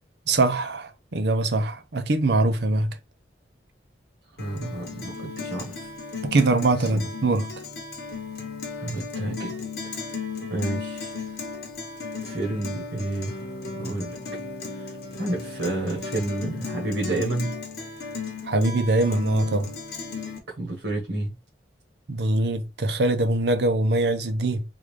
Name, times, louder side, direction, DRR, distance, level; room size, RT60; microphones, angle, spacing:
voice 1, 0.3-3.0 6.3-7.4 18.4-19.7 22.1-24.6, right 2 dB, 60° right, 0.6 m, -23 dB
Guitar, 4.4-20.4, left 4 dB, 60° left, 1.0 m, -35 dB
voice 2, 4.4-5.9 6.8-6.9 8.8-9.6 9.8-10.0 10.5-11.1 12.2-13.4 13.8-14.2 14.7-17.5 20.5-21.3, right 2 dB, 80° right, 1.2 m, -30 dB
3.7 x 2.4 x 3.1 m
head